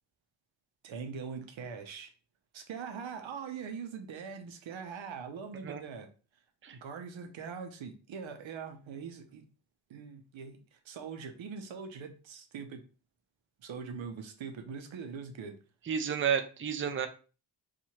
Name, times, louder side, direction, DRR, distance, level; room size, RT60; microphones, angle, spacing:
voice 1, 0.8-2.1 2.5-6.1 6.8-9.4 9.9-12.8 13.6-15.6, right 6 dB, 85° right, 6 dB, 0.7 m, -42 dB
voice 2, 15.9-17.1, right 7 dB, 30° right, 8 dB, 0.5 m, -31 dB
2.8 x 2.5 x 4.2 m, 0.35 s
cardioid pair, 65°, 45 cm